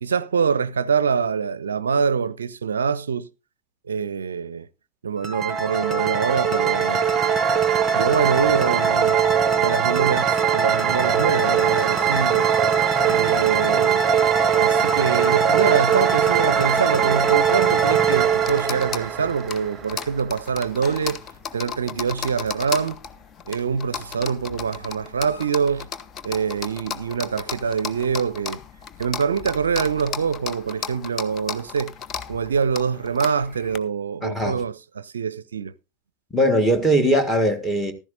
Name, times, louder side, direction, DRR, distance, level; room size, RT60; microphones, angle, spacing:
voice 1, 0.0-3.3 3.8-4.7 5.0-7.0 7.9-9.2 9.6-12.5 13.0-14.0 14.6-21.2 21.5-23.0 23.5-25.9 26.2-28.6 29.0-31.9 32.3-35.7, right 6 dB, 70° right, 0.5 m, -24 dB
sound 1, 5.2-20.0, right 7 dB, 25° right, 0.8 m, -20 dB
sound 2, 17.7-33.8, left 7 dB, 25° left, 0.7 m, -35 dB
sound 3, 24.6-25.8 27.2-28.4, left 3 dB, 85° left, 3.5 m, -50 dB
voice 2, 34.2-34.6 36.3-37.9, right 1 dB, 5° left, 1.6 m, -20 dB
14.5 x 12.5 x 2.6 m
figure-of-eight pair, 90°, 0 cm